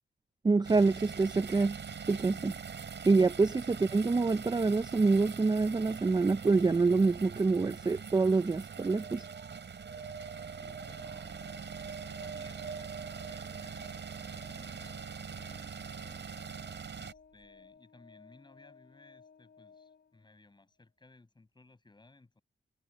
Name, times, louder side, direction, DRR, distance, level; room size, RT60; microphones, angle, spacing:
voice 1, 0.4-1.8 2.1-2.6 3.1-9.3, right 3 dB, 20° right, 0.5 m, -26 dB
sound 1, 0.6-17.1, right 6 dB, 65° right, 5.2 m, -43 dB
sound 2, 8.7-14.9 17.2-17.3 17.4-17.5, right 5 dB, 45° right, 6.3 m, -47 dB
Organ, 9.9-20.6, left 5 dB, 60° left, 7.1 m, -59 dB
voice 2, 10.3-11.4 11.8-16.4 17.0-22.4, left 2 dB, 20° left, 7.6 m, -60 dB
wide cardioid pair, 145°, 20 cm